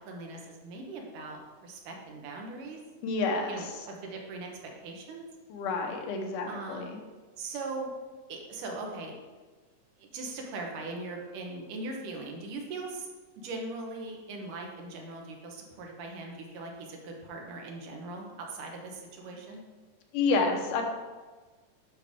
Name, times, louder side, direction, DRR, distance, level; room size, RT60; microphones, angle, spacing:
voice 1, 0.1-2.8 3.5-5.2 6.5-7.0 7.4-7.9 8.3-9.1 10.0-13.1 13.4-19.6, right 3 dB, 80° right, 1 dB, 2.7 m, -40 dB
voice 2, 3.0-3.6 5.5-6.9 20.1-20.8, left 3 dB, 80° left, 3 dB, 2.5 m, -29 dB
9.7 x 6.1 x 3.6 m, 1.3 s
omnidirectional pair, 3.7 m